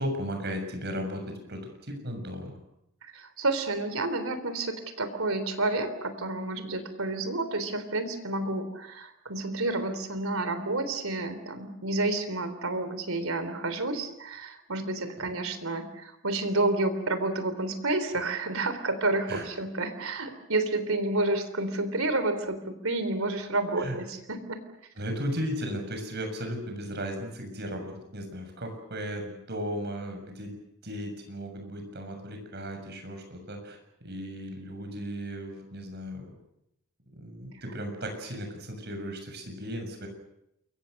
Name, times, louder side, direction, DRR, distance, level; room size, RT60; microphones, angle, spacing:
voice 1, 0.0-2.5 19.3-19.5 23.8-24.0 25.0-30.6 30.8-36.2 37.2-40.1, equal, 50° right, 5 dB, 6.9 m, -36 dB
voice 2, 3.0-24.6, right 2 dB, 85° right, 10 dB, 3.5 m, -30 dB
28.5 x 23.0 x 6.6 m, 0.79 s
head